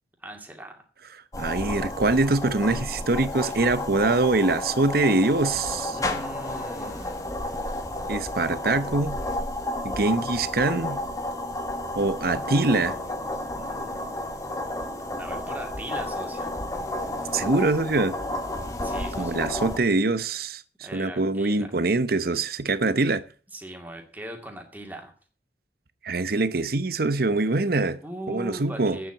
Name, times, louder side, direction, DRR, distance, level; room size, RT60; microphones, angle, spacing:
voice 1, 0.2-0.8 5.9-7.3 13.5-14.1 15.2-16.5 18.8-19.5 20.8-21.7 23.5-25.1 28.0-29.1, right 1 dB, 10° right, 2.4 m, -40 dB
sound 1, 1.3-19.8, left 1 dB, 20° left, 1.3 m, -32 dB
voice 2, 1.4-6.0 8.1-9.2 9.8-11.0 11.9-13.0 17.3-18.1 19.2-20.6 20.9-23.2 26.0-28.0 28.3-29.0, right 2 dB, 55° right, 0.8 m, -24 dB
9.0 x 7.5 x 8.8 m
head